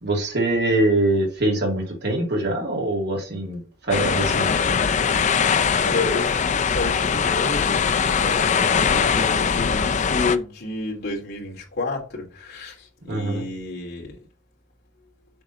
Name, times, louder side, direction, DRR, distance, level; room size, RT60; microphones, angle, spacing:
voice 1, 0.0-3.6 3.9-4.6 13.1-13.5, right 2 dB, 55° right, 2.7 m, -23 dB
sound 1, 3.9-10.4, left 6 dB, 35° left, 0.4 m, -21 dB
voice 2, 5.8-7.8 8.2-14.2, left 2 dB, 55° left, 2.8 m, -30 dB
7.1 x 3.8 x 5.8 m
head